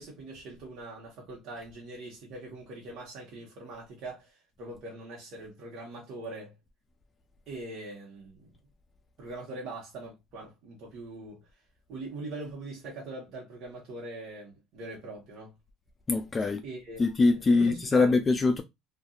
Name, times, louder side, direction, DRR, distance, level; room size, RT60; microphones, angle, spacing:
voice 1, 0.0-6.5 7.5-8.5 9.2-11.4 11.9-15.5 16.6-18.1, right 2 dB, 65° right, 1.2 m, -42 dB
voice 2, 16.1-16.6 17.0-18.6, left 3 dB, 25° left, 0.3 m, -23 dB
2.6 x 2.5 x 2.4 m
supercardioid pair, 95°, 0 cm